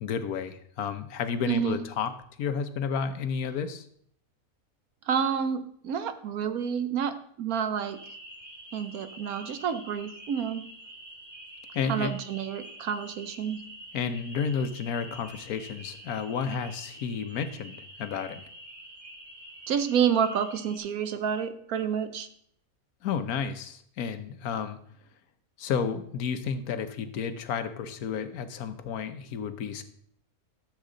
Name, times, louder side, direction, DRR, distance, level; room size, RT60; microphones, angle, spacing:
voice 1, 0.0-2.1 2.4-3.8 11.7-12.1 13.9-18.4 23.0-24.8 25.6-29.8, left 6 dB, 80° left, 10 dB, 1.3 m, -31 dB
voice 2, 1.5-1.8 5.1-8.0 8.7-10.6 11.9-13.6 19.7-22.3, right 7 dB, 75° right, 10 dB, 1.3 m, -29 dB
sound 1, 7.9-20.8, right 1 dB, 35° right, 3.0 m, -47 dB
13.5 x 7.3 x 3.9 m, 0.66 s
omnidirectional pair, 1.5 m